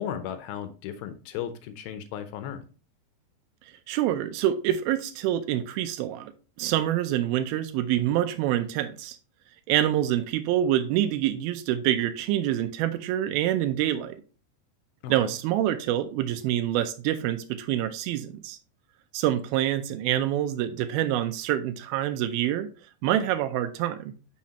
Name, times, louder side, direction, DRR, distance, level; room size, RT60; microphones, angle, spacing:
voice 1, 0.0-2.6 15.0-15.3, left 9 dB, 80° left, 2.2 m, -35 dB
voice 2, 3.9-6.3 6.6-9.2 9.7-14.2 15.1-18.6 19.1-22.7 23.0-24.2, right 12 dB, 85° right, 2.1 m, -26 dB
7.3 x 5.7 x 2.9 m
omnidirectional pair, 4.9 m